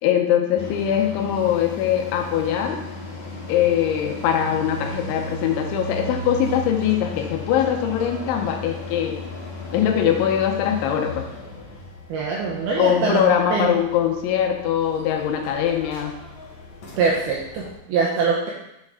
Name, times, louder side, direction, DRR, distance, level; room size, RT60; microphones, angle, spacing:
voice 1, 0.0-2.8 3.5-9.2 9.7-11.3 12.8-16.2, left 9 dB, 85° left, 3 dB, 3.1 m, -22 dB
sound 1, 0.5-17.7, left 1 dB, 60° left, 1.8 m, -36 dB
voice 2, 12.1-13.2 13.5-13.8 17.0-18.5, right 5 dB, 80° right, -3 dB, 2.3 m, -23 dB
7.3 x 6.4 x 3.7 m, 0.85 s
omnidirectional pair, 5.4 m